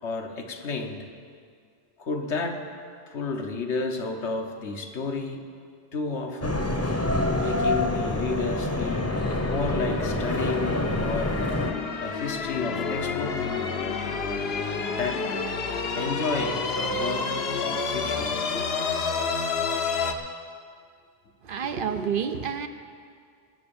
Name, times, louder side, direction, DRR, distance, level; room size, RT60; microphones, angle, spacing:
voice 1, 0.0-1.1 2.0-2.7 3.1-5.4 5.9-6.7 7.4-9.1 9.5-11.4 12.0-13.5 14.9-15.3 15.9-18.6, left 4 dB, 80° left, 4 dB, 1.4 m, -32 dB
sound 1, 6.4-11.7, left 1 dB, 15° left, 0.8 m, -26 dB
sound 2, 8.9-20.1, left 4 dB, 65° left, 1.1 m, -30 dB
voice 2, 21.4-22.7, right 7 dB, 60° right, 8 dB, 0.8 m, -29 dB
19.0 x 6.5 x 7.0 m, 2.2 s
omnidirectional pair, 1.1 m